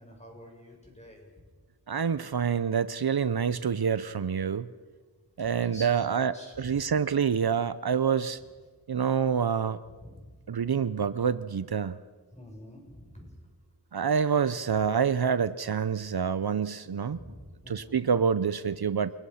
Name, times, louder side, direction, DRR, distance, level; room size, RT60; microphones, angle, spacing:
voice 1, 0.0-1.5 5.4-6.9 9.8-10.4 12.3-13.3 17.1-18.0, equal, 15° left, 0 dB, 7.2 m, -48 dB
voice 2, 1.9-4.7 5.4-8.4 8.9-9.8 10.5-12.0 13.9-17.2 17.7-19.1, right 7 dB, 70° right, 15 dB, 0.7 m, -27 dB
28.5 x 19.0 x 5.8 m, 1.4 s
wide cardioid pair, 45°, 39 cm